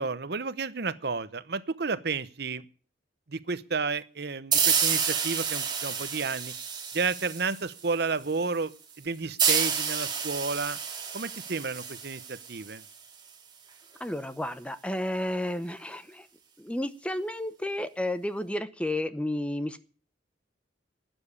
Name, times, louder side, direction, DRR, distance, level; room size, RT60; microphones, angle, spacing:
voice 1, 0.0-2.6 3.3-6.5 6.9-8.7 9.0-10.8 11.1-12.8, right 4 dB, 60° right, 15 dB, 0.8 m, -31 dB
sound 1, 4.5-7.9 9.4-12.9, right 7 dB, 25° right, 2.5 m, -29 dB
voice 2, 14.0-16.3 16.6-19.8, left 1 dB, 5° left, 12 dB, 0.7 m, -32 dB
12.5 x 9.0 x 8.3 m, 0.40 s
head